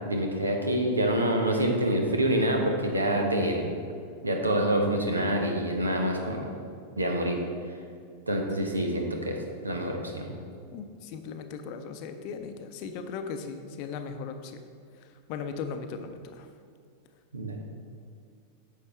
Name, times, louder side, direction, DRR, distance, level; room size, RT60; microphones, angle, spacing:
voice 1, 0.0-3.7 4.2-6.5 7.0-7.4 8.3-10.4 17.3-17.6, right 1 dB, 80° right, 3 dB, 1.0 m, -27 dB
voice 2, 10.7-14.6 14.9-16.5, left 5 dB, 45° left, 7 dB, 0.6 m, -38 dB
9.7 x 6.6 x 3.3 m, 2.3 s
figure-of-eight pair, 90°, 0 cm